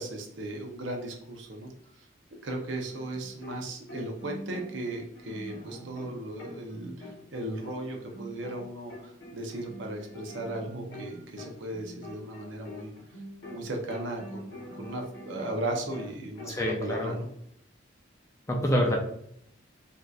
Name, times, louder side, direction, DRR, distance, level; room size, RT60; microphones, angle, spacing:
voice 1, 0.0-1.7 2.4-12.9 13.5-17.3, right 1 dB, 70° right, 2 dB, 0.6 m, -36 dB
sound 1, 2.7-3.6 3.9-8.6 8.9-13.6 13.9-16.6, left 1 dB, 55° left, 0.9 m, -44 dB
voice 2, 16.5-17.2 18.5-19.0, left 1 dB, 15° left, 0 dB, 0.4 m, -26 dB
3.3 x 2.7 x 2.3 m, 0.71 s
head